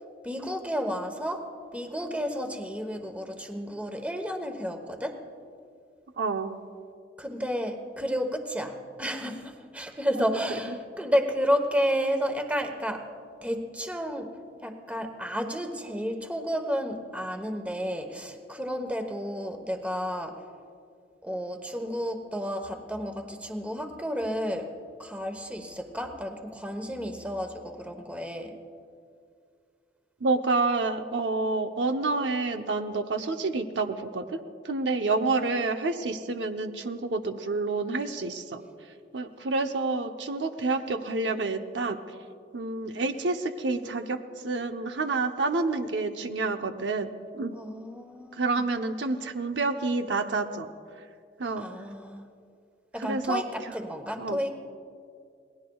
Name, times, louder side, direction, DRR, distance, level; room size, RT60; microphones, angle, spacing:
voice 1, 0.2-5.2 7.2-13.1 13.4-14.3 14.6-20.4 21.2-24.7 25.0-28.5 47.5-48.7 51.6-52.3 52.9-54.5, equal, 10° right, 5 dB, 1.1 m, -31 dB
voice 2, 6.2-6.6 10.1-10.2 30.2-34.4 34.6-38.6 39.1-42.0 42.5-44.2 44.4-47.6 48.4-50.7 51.4-51.7 53.0-53.4 54.2-54.4, right 3 dB, 85° right, 6 dB, 0.8 m, -28 dB
27.5 x 20.0 x 2.3 m, 2.3 s
head